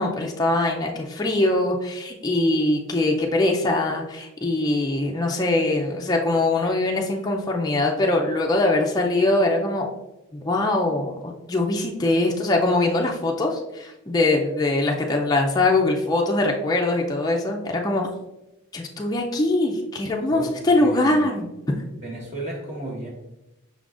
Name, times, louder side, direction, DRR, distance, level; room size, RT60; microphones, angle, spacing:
voice 1, 0.0-9.9 10.4-18.1 18.7-21.5, left 2 dB, 20° left, 0 dB, 0.4 m, -22 dB
voice 2, 20.3-21.2 22.0-23.1, right 1 dB, 30° right, -3 dB, 1.2 m, -34 dB
5.5 x 3.7 x 2.4 m, 0.95 s
head